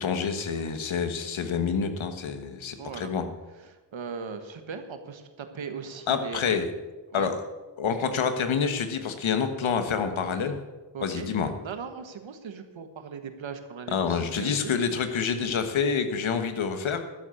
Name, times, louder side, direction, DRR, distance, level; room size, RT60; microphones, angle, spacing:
voice 1, 0.0-3.2 6.1-6.7 7.1-7.4 7.8-10.6 11.0-11.5 13.9-17.0, left 6 dB, 80° left, 8 dB, 1.4 m, -27 dB
voice 2, 2.8-3.1 3.6-6.4 7.1-7.3 10.9-11.3 11.6-14.7, right 6 dB, 75° right, 8 dB, 1.5 m, -38 dB
12.0 x 7.7 x 8.3 m, 1.2 s
cardioid pair, 55°, 46 cm